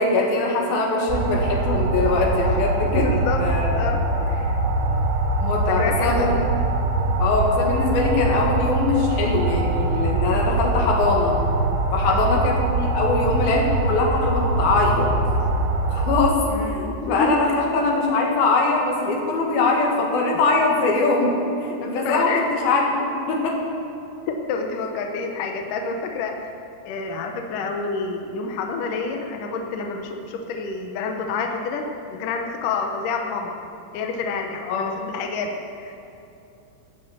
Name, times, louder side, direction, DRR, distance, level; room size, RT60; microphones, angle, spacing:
voice 1, 0.0-3.9 5.4-6.4 7.2-11.4 11.9-15.1 15.9-23.6 34.7-34.9, left 3 dB, 60° left, -1 dB, 3.4 m, -22 dB
sound 1, 1.1-16.2, right 2 dB, 75° right, 3.0 m, -23 dB
voice 2, 2.9-3.5 3.8-4.6 5.7-6.4 12.1-12.4 16.5-17.4 22.0-22.5 24.5-26.3 26.9-33.6 33.9-36.0, left 4 dB, 80° left, 3 dB, 1.9 m, -28 dB
17.5 x 7.6 x 7.1 m, 2.9 s
omnidirectional pair, 5.2 m